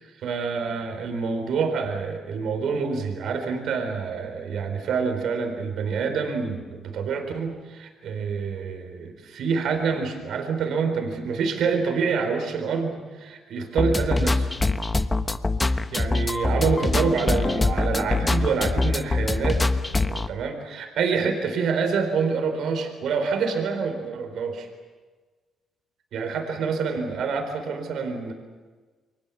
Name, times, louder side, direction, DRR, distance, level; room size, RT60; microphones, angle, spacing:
voice 1, 0.2-14.5 15.7-24.7 26.1-28.3, right 5 dB, 70° right, 5 dB, 4.3 m, -27 dB
sound 1, 13.8-20.3, left 2 dB, 20° left, 1.2 m, -23 dB
28.5 x 23.5 x 7.3 m, 1.4 s
cardioid pair, 90°, 0 cm